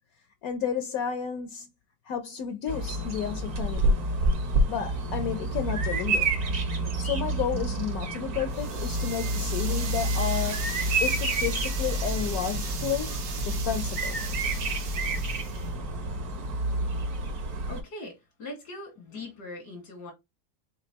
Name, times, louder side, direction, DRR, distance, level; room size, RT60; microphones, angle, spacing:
voice 1, 0.4-1.7 2.1-4.0 4.7-6.4 7.0-14.3, left 8 dB, 70° left, 1.0 m, -32 dB
Bird vocalization bird call bird song, 2.7-17.8, right 1 dB, 55° right, 1.3 m, -29 dB
sound 1, 8.5-15.7, right 5 dB, 85° right, 1.7 m, -38 dB
voice 2, 17.7-20.1, left 2 dB, 90° left, 2.3 m, -41 dB
5.1 x 3.7 x 2.8 m
omnidirectional pair, 1.8 m